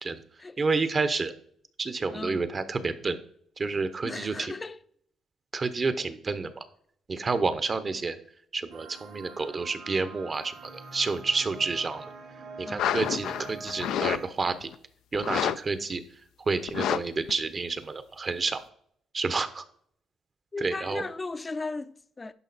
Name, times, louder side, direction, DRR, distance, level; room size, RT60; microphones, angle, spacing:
voice 1, 0.6-1.3 1.8-3.2 3.6-4.5 5.5-6.6 7.1-8.2 8.5-12.0 12.6-14.7 15.1-16.0 16.5-18.6 19.1-19.6 20.6-21.0, right 4 dB, 35° right, 0.9 m, -29 dB
voice 2, 2.1-2.5 4.0-4.8 12.6-13.0 20.5-22.3, left 3 dB, 25° left, 0.5 m, -36 dB
sound 1, 8.7-14.3, right 3 dB, 80° right, 1.6 m, -45 dB
sound 2, 12.8-14.2 14.5-14.7 15.1-15.6 15.9-16.0 16.7-17.0 17.3-17.4, left 10 dB, 80° left, 0.4 m, -28 dB
11.0 x 5.0 x 4.1 m
cardioid pair, 90°, 0 cm